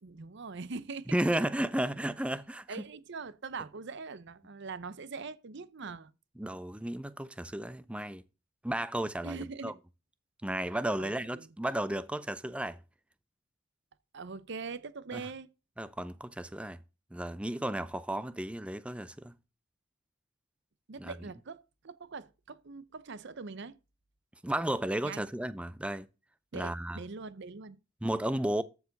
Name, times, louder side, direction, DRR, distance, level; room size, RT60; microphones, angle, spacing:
voice 1, 0.0-1.2 2.7-6.1 9.2-9.8 11.0-11.5 14.1-15.5 20.9-23.7 25.0-25.3 26.5-27.8, right 4 dB, 60° right, 0.7 m, -42 dB
voice 2, 1.1-2.7 6.4-8.2 8.6-9.7 10.4-12.8 15.1-15.2 15.8-16.8 17.1-19.3 21.0-21.1 24.4-26.1 26.5-27.0 28.0-28.6, right 1 dB, 5° right, 0.4 m, -33 dB
13.5 x 4.8 x 4.0 m
head